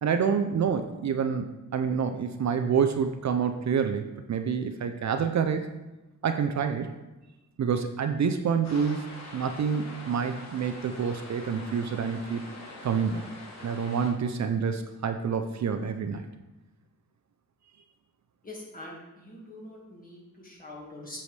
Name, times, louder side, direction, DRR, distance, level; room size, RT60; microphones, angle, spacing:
voice 1, 0.0-5.7 6.2-6.9 7.6-9.0 9.3-12.4 12.8-13.2 13.6-16.3, right 6 dB, 55° right, 7 dB, 0.5 m, -27 dB
sound 1, 8.6-14.1, left 2 dB, 50° left, 1.5 m, -44 dB
voice 2, 18.4-21.2, left 1 dB, 25° left, -3 dB, 1.8 m, -44 dB
7.9 x 6.9 x 3.3 m, 1.0 s
wide cardioid pair, 180°, 33 cm